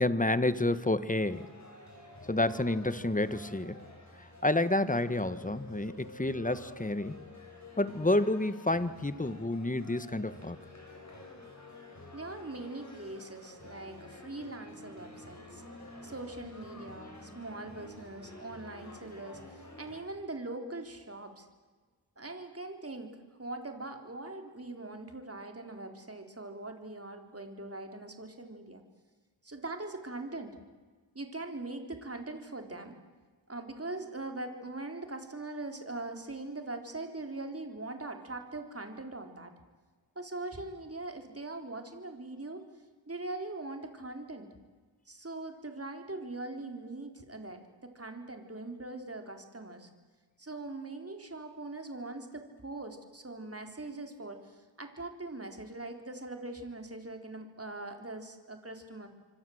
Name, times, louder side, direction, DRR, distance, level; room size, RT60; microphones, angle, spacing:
voice 1, 0.0-1.5 2.2-3.8 4.2-7.2 7.8-10.6, left 2 dB, 15° left, 14 dB, 1.4 m, -29 dB
sound 1, 1.1-20.0, left 1 dB, 35° left, 7.9 m, -50 dB
voice 2, 12.1-15.6 16.0-21.5 22.2-23.1 23.4-28.8 29.4-30.6 31.1-33.0 33.5-39.5 40.2-42.6 43.1-44.5 45.1-49.9 50.4-59.1, right 2 dB, 30° right, 5 dB, 3.8 m, -41 dB
27.5 x 25.0 x 7.9 m, 1.4 s
wide cardioid pair, 65°, 45 cm